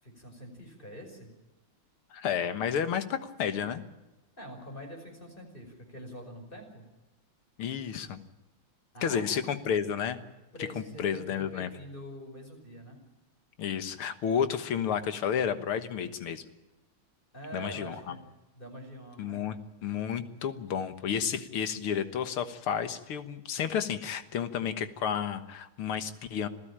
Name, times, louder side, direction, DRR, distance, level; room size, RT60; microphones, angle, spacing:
voice 1, 0.0-1.3 4.4-6.8 8.9-9.7 10.5-13.0 17.3-18.2 18.6-19.5, equal, 25° left, 3 dB, 5.7 m, -45 dB
voice 2, 2.1-3.8 7.6-8.2 9.0-10.2 10.8-11.7 13.6-16.5 17.5-18.2 19.2-26.5, left 8 dB, 90° left, 10 dB, 2.2 m, -31 dB
26.5 x 15.5 x 8.7 m, 1.1 s
omnidirectional pair, 2.3 m